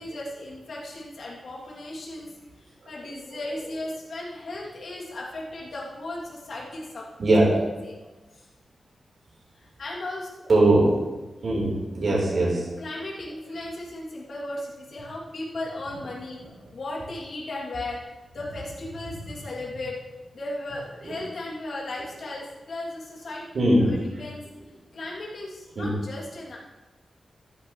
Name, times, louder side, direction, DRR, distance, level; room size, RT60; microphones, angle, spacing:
voice 1, 0.0-7.1 7.6-8.0 8.3-8.5 9.6-10.3 12.8-16.4 16.7-18.0 18.3-20.0 20.3-23.4 23.7-24.4 24.9-26.6, left 2 dB, 60° left, -5 dB, 2.8 m, -36 dB
voice 2, 10.5-11.0 11.4-12.7 21.0-21.2 23.5-24.0 25.8-25.9, right 1 dB, 55° right, -4 dB, 4.2 m, -20 dB
14.0 x 11.0 x 3.3 m, 1.1 s
wide cardioid pair, 175°, 0 cm